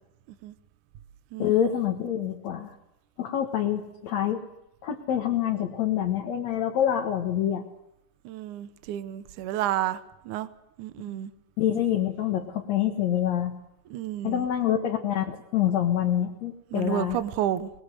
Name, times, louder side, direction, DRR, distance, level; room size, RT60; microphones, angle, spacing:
voice 1, 1.4-2.8 3.2-4.4 4.8-7.6 11.6-13.6 14.2-17.2, left 10 dB, 60° left, 2 dB, 2.7 m, -26 dB
voice 2, 8.2-10.5 10.8-11.3 13.9-14.5 16.7-17.7, right 11 dB, 75° right, 12 dB, 2.4 m, -31 dB
24.5 x 21.0 x 6.6 m, 0.86 s
omnidirectional pair, 3.6 m